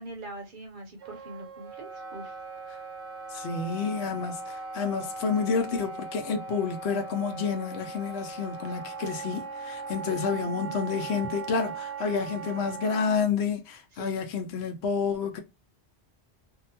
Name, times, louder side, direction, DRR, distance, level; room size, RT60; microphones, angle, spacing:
voice 1, 0.0-2.4 10.0-11.0 13.9-14.1, right 1 dB, 55° right, 0.8 m, -43 dB
Wind instrument woodwind instrument, 1.0-13.1, right 4 dB, 90° right, 1.1 m, -39 dB
voice 2, 3.3-15.4, left 5 dB, 75° left, 0.8 m, -29 dB
2.7 x 2.1 x 2.7 m
omnidirectional pair, 1.1 m